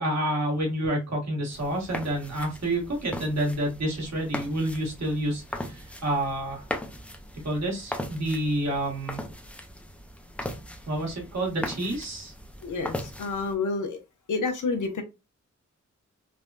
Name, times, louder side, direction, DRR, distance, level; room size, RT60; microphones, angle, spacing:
voice 1, 0.0-6.6 7.4-9.2 10.9-12.3, right 1 dB, 60° right, -2 dB, 1.5 m, -29 dB
sound 1, 1.5-13.5, left 1 dB, 5° left, 0.5 m, -39 dB
voice 2, 12.6-14.0 14.3-15.0, left 4 dB, 85° left, 5 dB, 0.7 m, -29 dB
3.3 x 2.2 x 2.4 m, 0.25 s
wide cardioid pair, 115°, 30 cm